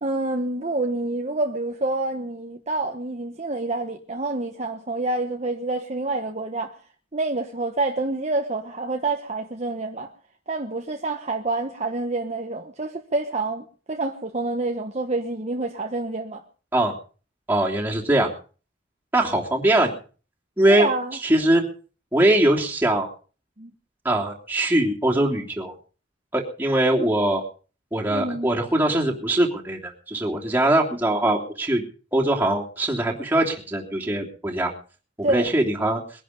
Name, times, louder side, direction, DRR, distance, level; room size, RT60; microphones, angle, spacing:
voice 1, 0.0-6.7 7.1-10.1 10.5-16.4 20.7-21.2 23.6-23.7 28.1-28.5 35.2-35.5, right 2 dB, 35° right, 1.2 m, -27 dB
voice 2, 17.5-18.3 19.1-20.0 20.6-20.9 21.2-21.6 22.1-23.1 24.0-25.7 26.3-27.4 27.9-31.8 32.1-34.7 35.2-36.0, right 1 dB, 10° right, 3.2 m, -21 dB
22.0 x 11.0 x 5.3 m
head